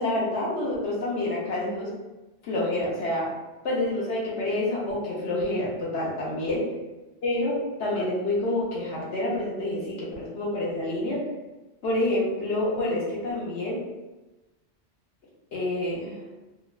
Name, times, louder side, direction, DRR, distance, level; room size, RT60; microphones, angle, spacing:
voice 1, 0.0-1.9 2.4-3.3 3.6-6.6 7.2-11.2 11.8-13.8 15.5-16.2, left 1 dB, 75° left, -5 dB, 1.1 m, -28 dB
2.9 x 2.2 x 2.3 m, 1.1 s
omnidirectional pair, 1.2 m